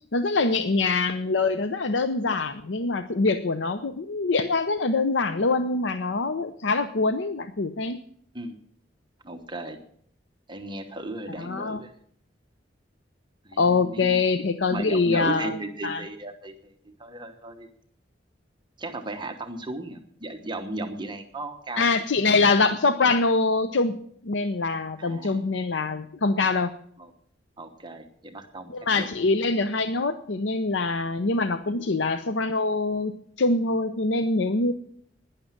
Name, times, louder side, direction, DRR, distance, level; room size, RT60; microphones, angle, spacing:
voice 1, 0.1-8.0 11.4-11.8 13.6-15.6 15.8-16.0 21.8-24.0 24.2-26.7 28.7-33.1 33.4-34.7, left 3 dB, 80° left, 10 dB, 0.7 m, -24 dB
voice 2, 9.2-9.8 10.5-11.9 13.4-14.2 14.7-17.7 18.8-21.9 25.0-25.4 27.0-27.1 27.6-29.1 31.6-31.8, right 2 dB, 25° right, 6 dB, 1.1 m, -36 dB
11.5 x 10.5 x 7.3 m, 0.65 s
head